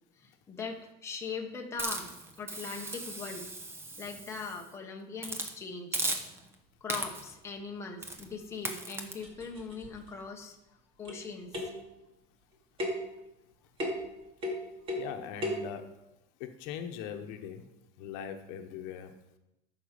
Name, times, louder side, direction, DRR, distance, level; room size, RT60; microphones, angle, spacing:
voice 1, 0.2-2.1 2.4-3.5 4.0-6.0 6.8-11.7, left 4 dB, 15° left, 0 dB, 1.1 m, -41 dB
Hiss, 1.8-4.7 5.2-5.5 5.9-6.5 6.9-7.4 8.0-8.3 8.7-9.1, right 2 dB, 15° right, 0.9 m, -37 dB
sound 1, 9.2-10.1 11.0-11.3 11.5-11.9 12.8-13.1 13.8-14.1 14.4-15.1 15.4-15.7, left 1 dB, 30° right, 2.2 m, -35 dB
voice 2, 14.9-15.9 16.4-17.7 18.0-19.1, left 8 dB, 70° left, 6 dB, 1.1 m, -40 dB
13.5 x 6.0 x 5.1 m, 0.88 s
cardioid pair, 175°, 19 cm